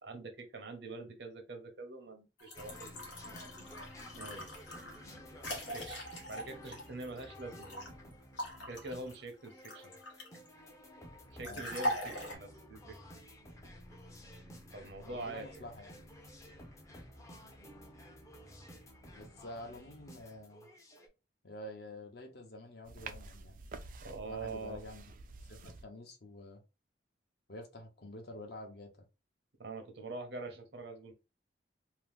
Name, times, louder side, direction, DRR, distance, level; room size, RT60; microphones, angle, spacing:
voice 1, 0.0-3.0 4.1-4.5 5.7-6.0 6.3-8.0 8.7-10.0 11.3-13.0 14.7-15.6 24.0-24.8 29.6-31.1, right 3 dB, 75° right, 0.8 m, -44 dB
sound 1, 2.4-7.9 8.4-10.5 11.4-12.3, left 1 dB, 90° left, 1.0 m, -41 dB
sound 2, 2.5-21.1, equal, 15° left, 0.5 m, -53 dB
voice 2, 15.1-16.0 19.1-20.7 21.4-23.6 24.3-25.0 25.5-26.6 27.5-28.9, left 1 dB, 60° left, 0.8 m, -48 dB
sound 3, 22.8-25.8, right 3 dB, 45° right, 0.3 m, -49 dB
2.8 x 2.0 x 3.3 m
head